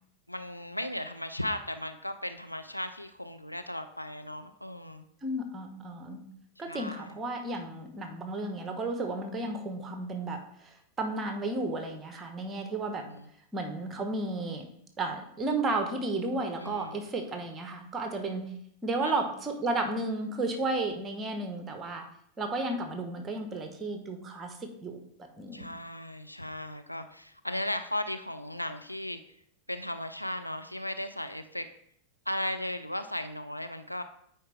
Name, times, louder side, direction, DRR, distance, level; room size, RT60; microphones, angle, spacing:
voice 1, 0.3-5.0 6.6-7.1 13.1-13.2 16.6-17.0 19.0-19.1 25.5-29.2 29.7-31.7 32.3-34.0, left 1 dB, 90° left, 8 dB, 0.4 m, -36 dB
voice 2, 5.2-6.3 6.6-13.0 13.5-14.7 15.0-18.5 18.8-22.0 22.4-25.0 25.4-25.7, right 2 dB, 20° right, 5 dB, 1.0 m, -33 dB
9.2 x 4.4 x 3.4 m, 0.69 s
figure-of-eight pair, 90°, 0 cm